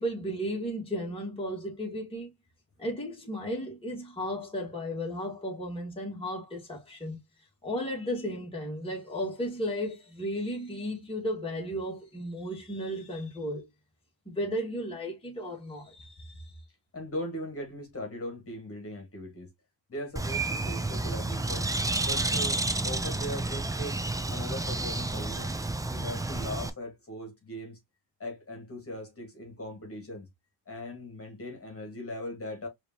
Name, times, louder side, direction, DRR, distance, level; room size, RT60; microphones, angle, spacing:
voice 1, 0.0-2.3 2.8-7.2 7.6-13.7 14.3-16.5, equal, 15° left, 1.8 m, -34 dB
voice 2, 16.9-19.5 19.9-21.7 22.0-24.0 24.3-25.5 25.9-27.8 28.2-30.3 30.7-32.7, left 1 dB, 30° left, 1.8 m, -39 dB
Bird, 20.2-26.7, right 2 dB, 10° right, 0.5 m, -30 dB
4.9 x 2.9 x 2.8 m
cardioid pair, 100°, 42 cm